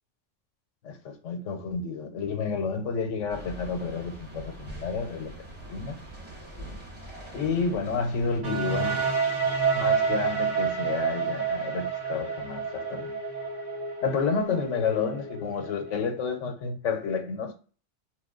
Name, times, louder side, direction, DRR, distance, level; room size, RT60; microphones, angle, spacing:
voice 1, 0.8-5.3 5.7-6.0 7.3-9.1 9.7-13.2 14.0-17.5, left 5 dB, 75° left, 1.0 m, -30 dB
sound 1, 3.3-8.4, right 1 dB, 10° right, 1.4 m, -43 dB
sound 2, 8.4-16.2, right 5 dB, 75° right, 1.3 m, -29 dB
3.1 x 2.2 x 3.7 m
omnidirectional pair, 1.3 m